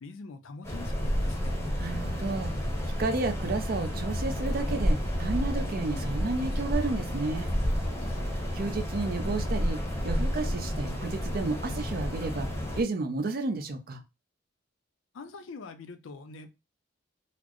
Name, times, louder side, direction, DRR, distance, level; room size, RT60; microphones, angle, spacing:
voice 1, 0.0-1.6 8.0-8.3 15.1-16.5, left 4 dB, 75° left, 0.5 m, -44 dB
sound 1, 0.6-12.8, equal, 15° left, 0.8 m, -30 dB
voice 2, 1.8-2.5 3.0-7.5 8.5-12.5 12.8-14.0, right 3 dB, 45° right, 0.5 m, -32 dB
4.1 x 2.0 x 3.0 m
head